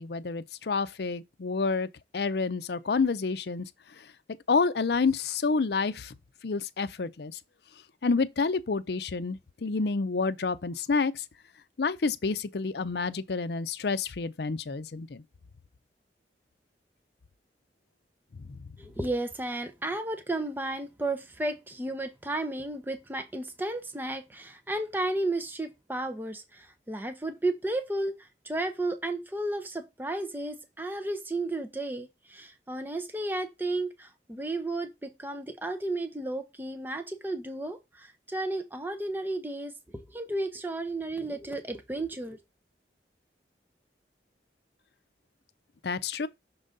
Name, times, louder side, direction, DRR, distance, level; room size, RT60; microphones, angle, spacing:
voice 1, 0.0-3.7 4.0-4.1 4.5-6.1 6.4-7.4 8.0-11.2 11.8-15.2 45.8-46.3, left 4 dB, 65° left, 0.5 m, -29 dB
voice 2, 18.8-42.4, right 2 dB, 10° right, 0.7 m, -33 dB
6.2 x 3.9 x 3.9 m
head